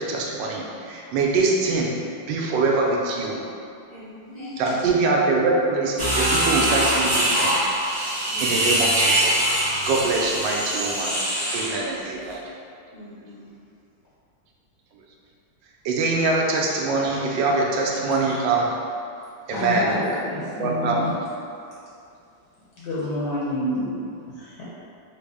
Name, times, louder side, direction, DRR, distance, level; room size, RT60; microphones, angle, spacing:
voice 1, 0.0-2.0 2.3-3.4 4.6-7.7 8.0-9.4 9.9-11.1 11.5-12.5 14.9-15.0 15.8-18.7 19.5-20.0 20.6-21.1, right 3 dB, 75° right, -1 dB, 1.2 m, -24 dB
voice 2, 3.9-4.8 6.2-6.3 8.3-8.8 11.7-12.0 12.9-13.6, left 1 dB, 60° right, -13 dB, 0.4 m, -40 dB
sound 1, 6.0-11.8, right 1 dB, 25° left, 0.4 m, -23 dB
voice 3, 19.5-21.1 22.8-24.6, left 1 dB, 75° left, -8 dB, 1.1 m, -28 dB
3.9 x 2.0 x 3.4 m, 2.4 s
omnidirectional pair, 2.1 m